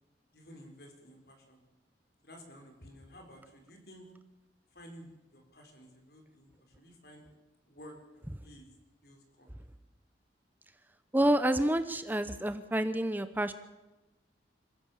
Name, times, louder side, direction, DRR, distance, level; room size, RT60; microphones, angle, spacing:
voice 1, 0.3-1.6 2.2-4.1 4.7-7.3 7.7-8.7 9.0-9.5, equal, 60° left, 3 dB, 4.7 m, -53 dB
voice 2, 11.1-13.5, right 1 dB, 10° right, 11 dB, 0.7 m, -28 dB
26.5 x 15.5 x 7.2 m, 1.0 s
head